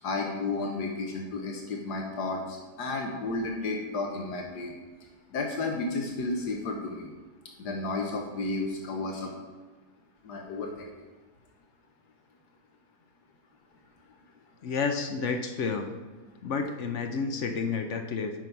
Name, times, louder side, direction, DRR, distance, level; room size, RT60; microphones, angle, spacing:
voice 1, 0.0-4.7 5.3-7.1 7.6-9.3 10.2-10.9, left 3 dB, 75° left, 1 dB, 1.5 m, -32 dB
voice 2, 14.6-15.9 16.4-18.3, left 5 dB, 60° left, 6 dB, 0.8 m, -30 dB
9.0 x 5.6 x 4.5 m, 1.3 s
omnidirectional pair, 1.8 m